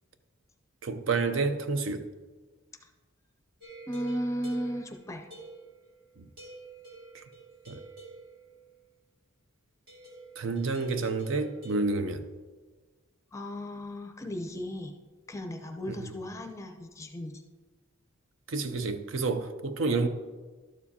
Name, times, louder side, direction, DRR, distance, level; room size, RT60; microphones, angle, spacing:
voice 1, 0.8-2.1 6.2-6.3 7.1-7.2 7.7-7.8 10.4-12.3 15.9-16.1 18.5-20.1, right 3 dB, 65° right, 9 dB, 0.6 m, -29 dB
sound 1, 3.6-6.0 6.4-8.6 9.9-11.8, right 3 dB, 50° right, 2.1 m, -48 dB
voice 2, 3.9-5.3 13.3-14.9 15.3-17.5, equal, 15° left, 5 dB, 0.6 m, -35 dB
12.0 x 7.2 x 2.8 m, 1.3 s
head